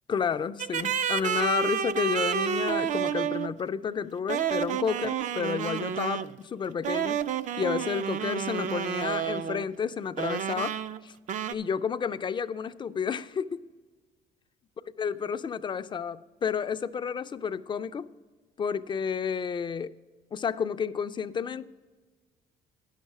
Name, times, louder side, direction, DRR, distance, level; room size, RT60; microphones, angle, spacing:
voice 1, 0.1-7.2 7.6-10.7 11.0-11.1 11.5-13.6 15.0-18.1 18.6-19.9 20.3-21.7, left 6 dB, 30° left, 0.4 m, -31 dB
sound 1, 0.6-3.5 4.3-6.4 6.8-9.7 10.2-11.0 11.3-11.5, right 8 dB, 45° right, 0.4 m, -30 dB
10.0 x 6.5 x 5.9 m
cardioid pair, 110°, 17 cm